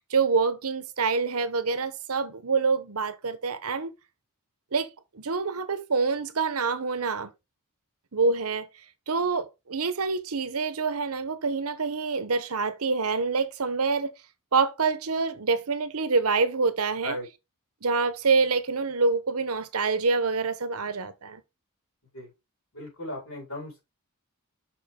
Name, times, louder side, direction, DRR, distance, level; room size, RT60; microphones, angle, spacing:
voice 1, 0.1-3.9 4.7-4.9 5.1-7.3 8.1-8.7 9.1-14.1 14.5-17.2 17.8-21.4, right 4 dB, 70° right, 0.9 m, -26 dB
voice 2, 22.7-23.8, left 1 dB, 65° left, 4.7 m, -36 dB
6.1 x 6.1 x 3.7 m
head